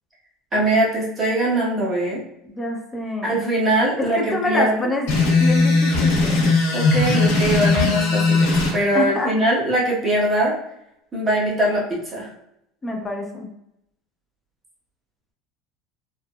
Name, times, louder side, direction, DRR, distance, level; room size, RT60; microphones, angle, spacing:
voice 1, 0.5-2.2 3.2-4.8 6.7-10.5 11.1-12.3, right 1 dB, 25° right, -5 dB, 1.2 m, -21 dB
voice 2, 2.5-3.4 4.0-5.1 5.4-6.5 8.9-9.3 12.8-13.5, left 2 dB, 15° left, 1 dB, 0.6 m, -26 dB
sound 1, 5.1-8.7, left 3 dB, 85° left, 1.1 m, -18 dB
3.4 x 2.0 x 2.3 m, 0.81 s
supercardioid pair, 125°, 0 cm